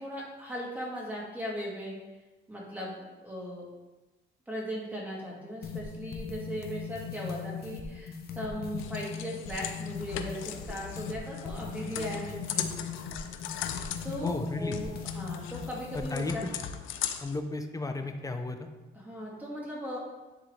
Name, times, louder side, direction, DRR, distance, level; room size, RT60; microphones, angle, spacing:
voice 1, 0.0-2.0 2.5-3.7 4.5-12.9 14.0-16.5 18.9-20.0, equal, 10° right, -5 dB, 2.4 m, -38 dB
sound 1, 5.6-16.3, left 6 dB, 50° left, 0.9 m, -40 dB
sound 2, 8.8-17.4, left 10 dB, 90° left, 0.5 m, -39 dB
voice 2, 14.2-14.8 15.9-16.5 17.2-18.7, left 3 dB, 15° left, 6 dB, 0.7 m, -33 dB
10.0 x 3.7 x 3.4 m, 1.1 s
cardioid pair, 90°, 20 cm